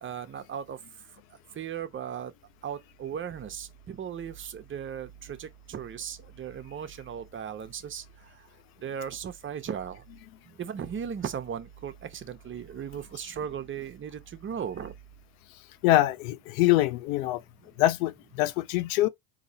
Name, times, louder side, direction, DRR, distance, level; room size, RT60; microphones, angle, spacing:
voice 1, 0.0-0.8 1.6-2.3 2.6-8.0 8.8-10.0 10.6-14.9, right 8 dB, 30° right, 0.7 m, -37 dB
voice 2, 15.8-17.4 17.8-19.1, left 15 dB, 75° left, 0.6 m, -24 dB
4.0 x 2.8 x 4.1 m
supercardioid pair, 95°, 42 cm